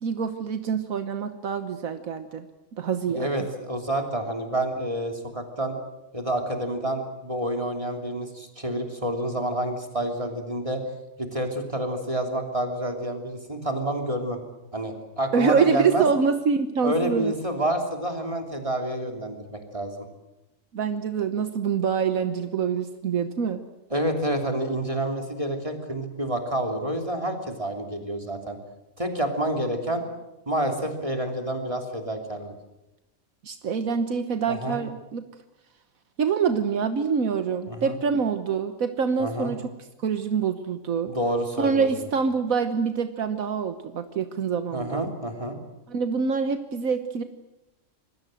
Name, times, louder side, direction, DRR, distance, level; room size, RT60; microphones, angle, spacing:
voice 1, 0.0-2.5 2.7-3.3 15.3-17.3 20.7-23.6 33.4-35.2 36.2-39.7 40.0-41.1 41.6-45.1 45.9-47.2, right 6 dB, 80° right, 9 dB, 1.6 m, -25 dB
voice 2, 3.1-5.7 6.1-10.8 11.2-14.4 14.7-16.0 16.8-20.0 23.9-28.6 29.0-30.0 30.5-32.5 34.5-34.8 37.7-38.0 39.2-39.5 41.0-41.9 44.7-45.6, right 1 dB, 25° right, 3 dB, 3.2 m, -28 dB
26.5 x 21.5 x 7.7 m, 0.97 s
omnidirectional pair, 1.4 m